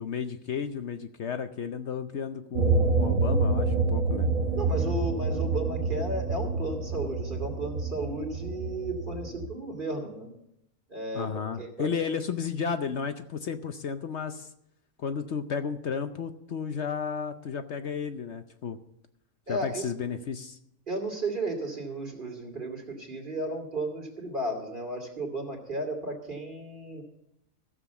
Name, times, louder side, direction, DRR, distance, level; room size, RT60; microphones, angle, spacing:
voice 1, 0.0-4.3 11.1-14.5 15.0-18.8 19.5-20.6, left 6 dB, 60° left, 8 dB, 0.9 m, -33 dB
sound 1, 2.5-9.5, right 3 dB, 60° right, 1.7 m, -27 dB
voice 2, 4.5-10.3 10.9-11.9 19.5-19.8 20.9-27.0, right 2 dB, 35° right, 2 dB, 2.8 m, -34 dB
15.0 x 7.6 x 7.0 m, 0.80 s
omnidirectional pair, 1.5 m